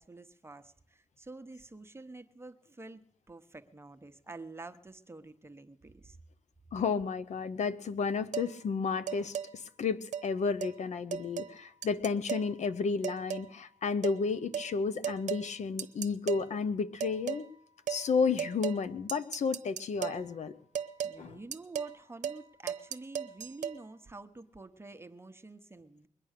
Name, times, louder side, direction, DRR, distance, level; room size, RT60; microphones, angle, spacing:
voice 1, 0.0-6.2 21.0-26.1, right 2 dB, 20° right, 8 dB, 1.1 m, -48 dB
voice 2, 6.7-17.5 17.9-20.6 21.2-21.4, left 5 dB, 65° left, 12 dB, 0.8 m, -32 dB
sound 1, 8.3-8.5 9.1-9.5 10.1-10.3 10.6-10.7 11.1-11.5 11.8-12.5 13.0-13.5 14.0-14.2 14.5-14.7 15.0-15.5 15.8-16.4 17.0-17.4 17.9-18.0 18.4-18.8 19.1-20.2 20.7-21.2 21.5-22.0 22.2-22.4 22.7-23.8, right 8 dB, 70° right, 0.9 m, -36 dB
21.5 x 8.7 x 6.6 m, 0.69 s
cardioid pair, 80°, 13 cm